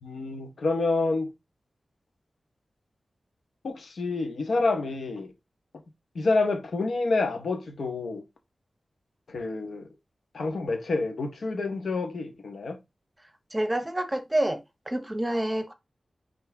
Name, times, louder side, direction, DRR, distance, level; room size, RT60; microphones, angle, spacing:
voice 1, 0.0-1.3 3.6-5.3 6.1-8.2 9.3-9.9 10.3-12.8, left 3 dB, 75° left, 1.6 m, -28 dB
voice 2, 13.5-14.6 14.9-15.7, right 1 dB, 15° right, 1.1 m, -27 dB
9.7 x 3.4 x 3.6 m
wide cardioid pair, 100°, 0 cm